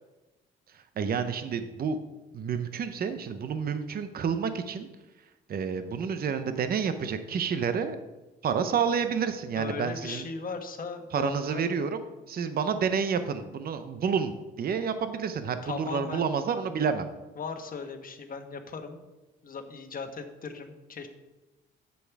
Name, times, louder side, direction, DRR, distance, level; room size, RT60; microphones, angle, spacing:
voice 1, 1.0-2.0 2.3-4.9 5.5-8.0 8.4-10.2 11.1-12.0 12.3-17.1, right 6 dB, 50° right, 10 dB, 0.7 m, -29 dB
voice 2, 9.5-11.7 15.6-16.3 17.3-19.0 19.4-21.1, left 5 dB, 45° left, 6 dB, 1.2 m, -38 dB
8.7 x 6.7 x 4.7 m, 1.1 s
cardioid pair, 90°, 20 cm